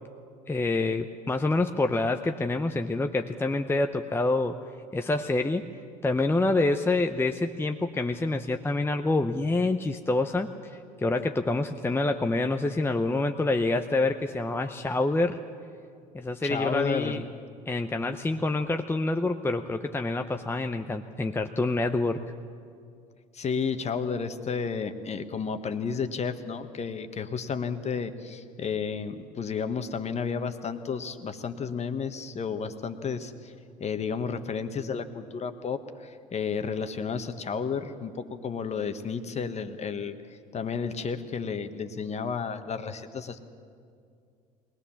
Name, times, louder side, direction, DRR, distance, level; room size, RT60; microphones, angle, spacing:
voice 1, 0.5-4.6 4.9-5.7 6.0-10.5 11.0-15.4 16.1-17.2 17.7-22.2, left 2 dB, 10° left, 6 dB, 0.8 m, -27 dB
voice 2, 16.4-17.2 23.3-33.5 33.8-43.4, left 6 dB, 35° left, 9 dB, 1.4 m, -32 dB
21.5 x 19.5 x 7.2 m, 2.3 s
hypercardioid pair, 65°, 20 cm